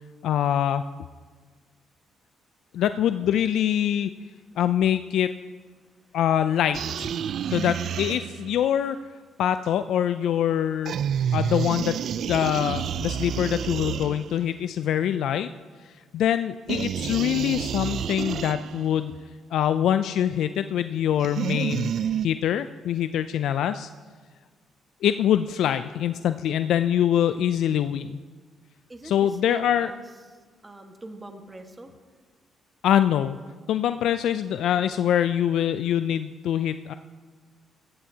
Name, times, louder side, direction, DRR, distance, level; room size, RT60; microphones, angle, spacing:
voice 1, 0.2-0.8 2.7-4.1 4.6-5.3 6.1-7.1 7.5-9.0 9.4-10.9 11.3-12.0 12.3-15.5 16.1-19.1 19.5-21.9 22.2-23.9 25.0-28.2 29.0-29.9 32.8-33.4 33.7-36.9, left 10 dB, 80° left, 11 dB, 0.3 m, -24 dB
voice 2, 5.8-6.2 11.2-11.4 28.9-31.9, right 2 dB, 20° right, 5 dB, 1.4 m, -44 dB
sound 1, 6.7-8.6 10.8-14.6 16.7-18.9 21.2-22.3, right 8 dB, 65° right, 0.3 m, -29 dB
15.5 x 15.0 x 2.8 m, 1.5 s
cardioid pair, 90°, 0 cm